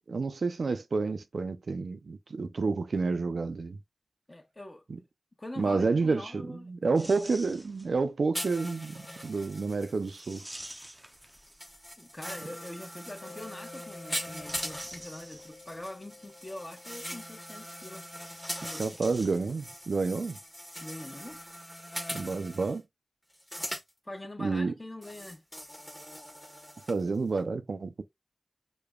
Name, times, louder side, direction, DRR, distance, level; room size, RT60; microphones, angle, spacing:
voice 1, 0.1-3.8 4.9-5.0 5.6-10.4 18.8-20.4 22.1-22.8 24.4-24.7 26.9-28.0, right 4 dB, 80° right, 0.3 m, -29 dB
voice 2, 4.3-4.8 5.4-7.3 12.0-18.1 18.6-19.0 20.8-21.4 24.0-25.4, left 1 dB, 30° left, 0.9 m, -44 dB
sound 1, 7.0-8.1 10.0-11.9 14.1-15.9 18.1-19.9 20.2-20.3 21.2-21.4, right 1 dB, 15° right, 0.5 m, -47 dB
sound 2, 8.3-22.8 23.3-23.9 25.0-27.0 27.4-27.5, equal, 5° left, 0.9 m, -41 dB
Mallet percussion, 13.2-19.6, left 3 dB, 65° left, 0.8 m, -53 dB
5.0 x 2.2 x 2.3 m
cardioid pair, 40°, 0 cm